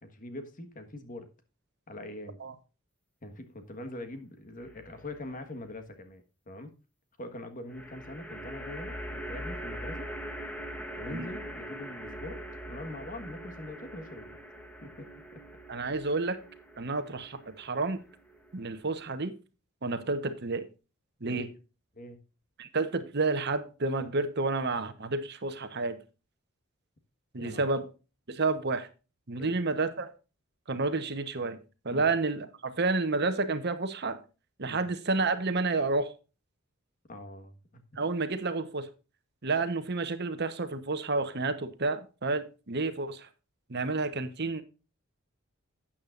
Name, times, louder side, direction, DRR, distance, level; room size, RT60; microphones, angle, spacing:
voice 1, 0.0-1.3 1.9-2.4 3.2-6.7 7.2-10.1 11.0-12.4 12.7-14.4 14.8-15.1 15.3-15.4 21.3-21.4 21.9-22.2 27.4-27.6 29.4-29.6 31.9-32.1 34.6-34.9 37.1-37.8, left 1 dB, 40° left, 8 dB, 1.5 m, -43 dB
sound 1, 4.6-5.2 7.7-19.1, equal, 5° left, 1.2 m, -42 dB
voice 2, 15.7-16.4 16.8-18.0 18.5-19.3 19.8-20.7 21.2-21.5 22.6-26.0 27.3-27.9 28.3-28.9 29.3-30.1 30.7-31.6 31.8-34.2 34.6-36.1 38.0-38.9 39.4-43.3 43.7-44.6, right 3 dB, 50° right, 10 dB, 1.1 m, -30 dB
12.5 x 8.8 x 2.6 m, 0.31 s
head